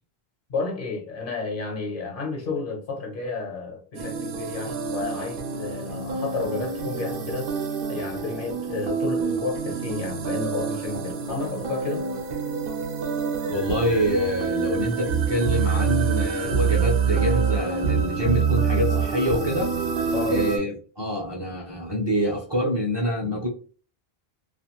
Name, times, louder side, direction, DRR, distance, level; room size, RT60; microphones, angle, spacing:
voice 1, 0.5-7.5 7.9-12.1 20.1-20.4, left 3 dB, 60° left, 1.0 m, -31 dB
sound 1, 4.0-20.6, right 6 dB, 65° right, 0.8 m, -26 dB
voice 2, 13.5-19.7 20.3-23.5, equal, 30° right, 0.6 m, -26 dB
2.5 x 2.4 x 2.9 m
omnidirectional pair, 1.0 m